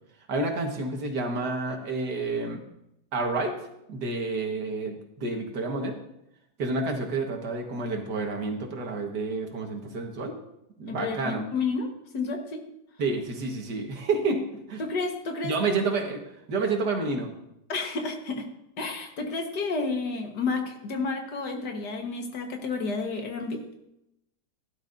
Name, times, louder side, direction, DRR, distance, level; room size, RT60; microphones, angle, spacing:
voice 1, 0.3-2.6 3.1-3.5 3.9-6.0 6.6-10.4 10.8-11.4 13.0-14.4 14.7-14.8 15.4-16.2 16.5-17.3, right 3 dB, 80° right, 3 dB, 2.1 m, -29 dB
voice 2, 10.9-12.6 14.8-15.8 17.7-18.5 18.8-23.6, left 4 dB, 80° left, 3 dB, 2.0 m, -31 dB
16.5 x 11.5 x 2.7 m, 0.83 s
omnidirectional pair, 1.8 m